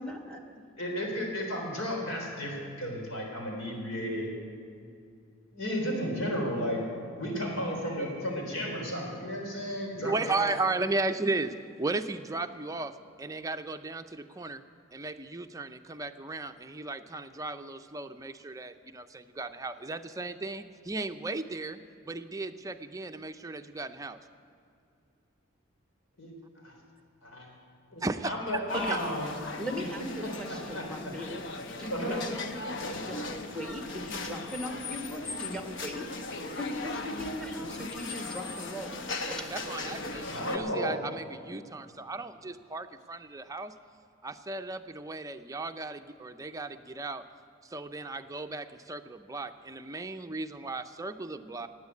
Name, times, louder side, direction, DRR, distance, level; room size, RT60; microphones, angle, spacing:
voice 1, 0.0-0.6 28.7-29.0 29.6-31.5 31.8-32.5 32.9-36.1 36.6-39.7, equal, 5° left, 4 dB, 1.3 m, -38 dB
voice 2, 0.8-4.3 5.5-10.5 26.2-26.3 26.6-26.7 27.2-27.5 27.9-29.3 29.6-29.8 30.2-31.1 31.9-32.2 39.9-40.0 40.3-41.0, equal, 85° left, 0 dB, 3.7 m, -33 dB
voice 3, 10.0-12.9 13.2-14.6 14.9-21.8 22.0-24.2 28.0-28.6 28.9-29.0 39.5-43.7 44.2-47.2 47.7-51.7, right 3 dB, 15° right, 8 dB, 0.5 m, -35 dB
sound 1, 28.7-40.6, left 3 dB, 60° left, 1.0 m, -38 dB
16.5 x 9.1 x 8.3 m, 2.5 s
head